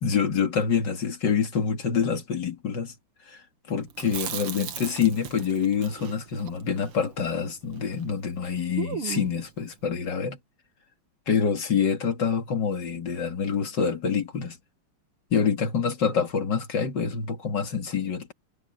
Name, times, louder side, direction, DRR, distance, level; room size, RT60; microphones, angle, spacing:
voice 1, 0.0-2.9 3.3-3.4 3.7-10.4 11.3-14.6 15.3-18.3, left 6 dB, 55° left, 2.8 m, -26 dB
Chewing mastication, 3.9-8.1 8.3-8.4 8.8-9.5, right 9 dB, 80° right, 2.4 m, -37 dB
omnidirectional pair, 2.4 m